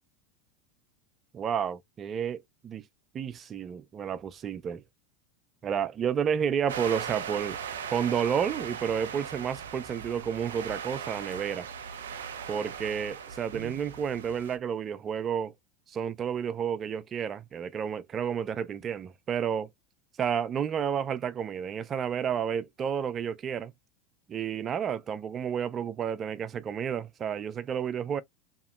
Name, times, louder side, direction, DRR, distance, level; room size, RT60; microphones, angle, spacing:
voice 1, 1.3-2.8 3.1-4.8 5.6-7.6 7.9-11.7 12.5-15.5 15.9-19.7 20.2-23.7 24.3-28.2, right 8 dB, 35° right, 0.4 m, -31 dB
sound 1, 6.7-14.6, right 7 dB, 80° right, 0.5 m, -38 dB
2.9 x 2.8 x 2.3 m
hypercardioid pair, 100°, 0 cm